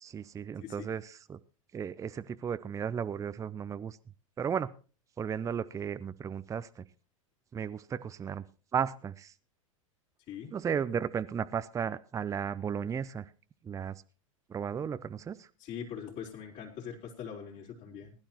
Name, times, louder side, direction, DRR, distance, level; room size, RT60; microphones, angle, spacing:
voice 1, 0.0-1.4 1.7-4.0 4.4-4.7 5.2-6.8 7.5-8.4 8.7-9.3 10.5-13.3 13.6-14.0 14.5-15.5, right 7 dB, 20° right, 0.6 m, -34 dB
voice 2, 15.6-18.1, left 8 dB, 40° left, 3.8 m, -42 dB
20.0 x 12.0 x 3.0 m
hypercardioid pair, 95°, 17 cm